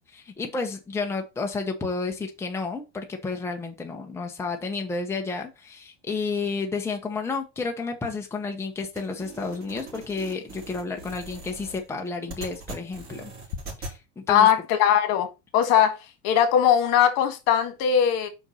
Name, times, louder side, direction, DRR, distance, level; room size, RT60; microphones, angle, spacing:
voice 1, 0.1-13.3 13.8-14.5, left 4 dB, 10° left, 0.9 m, -31 dB
sound 1, 9.0-14.0, right 3 dB, 30° right, 3.8 m, -41 dB
voice 2, 14.3-16.0 16.2-18.3, left 9 dB, 60° left, 1.7 m, -20 dB
5.2 x 4.6 x 5.5 m
supercardioid pair, 140°, 30 cm